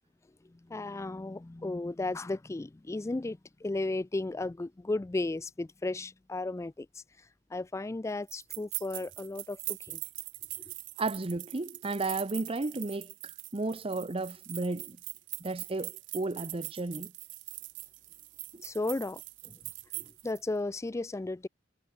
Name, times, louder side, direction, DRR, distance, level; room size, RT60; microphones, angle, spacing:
voice 1, 0.5-6.9 7.5-10.0 18.6-19.6 20.0-21.5, left 2 dB, 15° left, 0.3 m, -34 dB
sound 1, 8.3-20.4, right 21 dB, 80° right, 0.7 m, -42 dB
voice 2, 11.0-15.0 15.4-17.1 18.5-18.6, right 2 dB, 30° right, 0.8 m, -33 dB
head